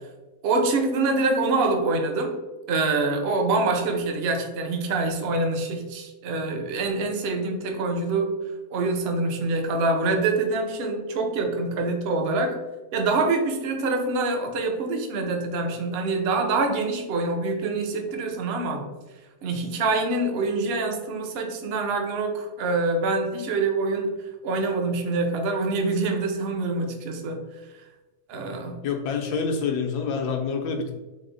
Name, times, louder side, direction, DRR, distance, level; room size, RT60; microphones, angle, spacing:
voice 1, 0.4-2.4 2.7-8.3 8.7-12.6 12.9-18.9 19.4-24.1 24.4-27.4 28.3-28.8, right 3 dB, 65° right, 4 dB, 0.5 m, -25 dB
voice 2, 28.8-30.9, left 5 dB, 85° left, 3 dB, 1.2 m, -27 dB
4.2 x 2.0 x 3.7 m, 1.1 s
omnidirectional pair, 1.7 m